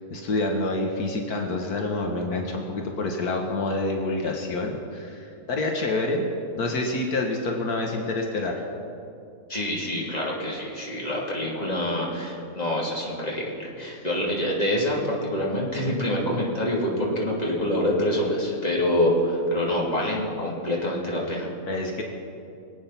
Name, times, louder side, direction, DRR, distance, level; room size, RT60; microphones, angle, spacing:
voice 1, 0.1-6.3 6.6-8.5 13.9-14.0 21.7-22.0, left 2 dB, 80° left, 2 dB, 1.8 m, -27 dB
voice 2, 9.5-21.5, left 1 dB, 25° left, -4 dB, 2.8 m, -26 dB
23.0 x 8.8 x 5.9 m, 2.5 s
omnidirectional pair, 1.6 m